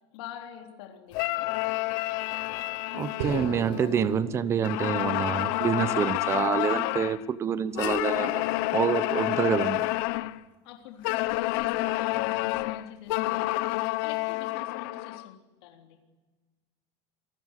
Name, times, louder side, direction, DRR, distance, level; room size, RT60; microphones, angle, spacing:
voice 1, 0.1-1.5 10.6-15.4 15.6-16.0, left 9 dB, 65° left, 3 dB, 3.6 m, -45 dB
sound 1, 1.1-4.2 4.6-7.2 7.8-10.4 11.0-15.3, left 19 dB, 50° left, 0.8 m, -29 dB
voice 2, 2.9-8.4 8.7-9.8, right 8 dB, 20° right, 15 dB, 0.9 m, -27 dB
sound 2, 3.2-7.6, right 4 dB, 75° right, 7.3 m, -40 dB
27.5 x 18.5 x 8.2 m, 1.3 s
supercardioid pair, 175°, 14 cm